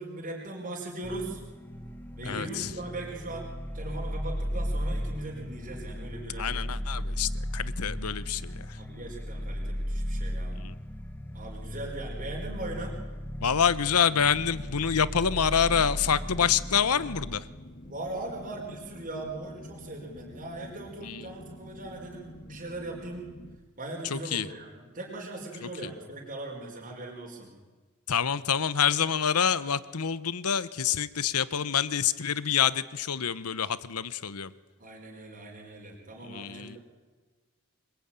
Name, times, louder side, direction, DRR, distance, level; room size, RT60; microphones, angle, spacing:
voice 1, 0.0-1.4 2.2-6.7 8.7-10.7 11.3-12.9 17.8-23.3 23.8-27.5 34.8-36.8, right 2 dB, 40° right, 0 dB, 4.7 m, -39 dB
sound 1, 1.0-17.4, equal, 10° left, 1.0 m, -36 dB
voice 2, 2.2-2.7 6.4-8.8 10.5-10.8 13.4-17.5 21.0-21.3 24.0-24.5 25.6-25.9 28.1-34.5 36.2-36.8, left 7 dB, 90° left, 16 dB, 1.0 m, -27 dB
sound 2, 15.5-23.5, equal, 45° left, 2.2 m, -48 dB
25.0 x 21.5 x 9.0 m, 1.4 s
head